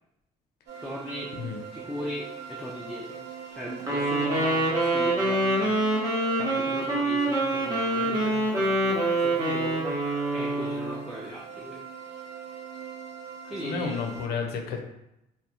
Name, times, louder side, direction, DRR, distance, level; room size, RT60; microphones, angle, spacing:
sound 1, 0.7-14.3, right 7 dB, 80° right, 0.6 m, -42 dB
voice 1, 0.8-1.3 1.7-5.8 6.4-9.9 10.3-11.8 13.4-14.1, equal, ahead, -4 dB, 0.4 m, -38 dB
Wind instrument woodwind instrument, 3.8-11.0, right 1 dB, 20° right, 0.8 m, -25 dB
voice 2, 13.6-14.8, left 5 dB, 70° left, 3 dB, 0.5 m, -31 dB
2.3 x 2.0 x 2.8 m, 0.85 s
cardioid pair, 110°, 17 cm